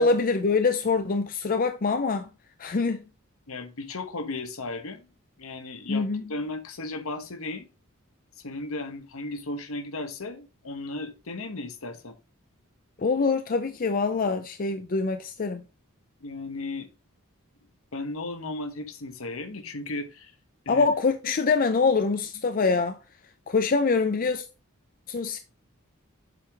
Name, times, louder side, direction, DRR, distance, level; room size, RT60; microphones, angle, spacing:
voice 1, 0.0-2.3 2.6-3.0 5.9-6.2 13.0-15.6 20.7-23.0 23.5-24.5 25.1-25.4, left 4 dB, 40° left, 0.5 m, -24 dB
voice 2, 3.5-5.1 5.4-7.7 8.4-12.1 16.2-16.9 17.9-20.3 20.6-20.9, left 2 dB, 75° left, 1.1 m, -35 dB
7.7 x 4.8 x 3.4 m
head